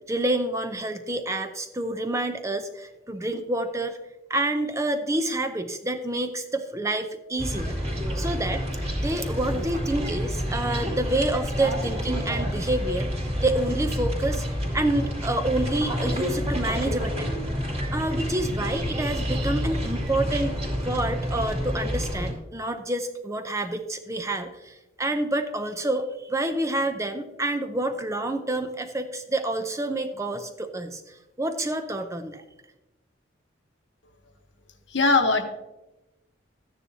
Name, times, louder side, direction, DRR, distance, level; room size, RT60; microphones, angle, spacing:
voice 1, 0.1-4.0 4.3-8.6 9.0-13.1 13.4-14.5 14.7-17.3 17.9-20.5 20.8-31.0 31.4-32.4, right 1 dB, 15° right, 7 dB, 0.6 m, -28 dB
sound 1, 7.4-22.3, equal, 35° right, 2.5 m, -28 dB
voice 2, 34.9-35.4, left 3 dB, 70° left, 5 dB, 1.1 m, -20 dB
13.0 x 9.6 x 2.8 m, 1.0 s
head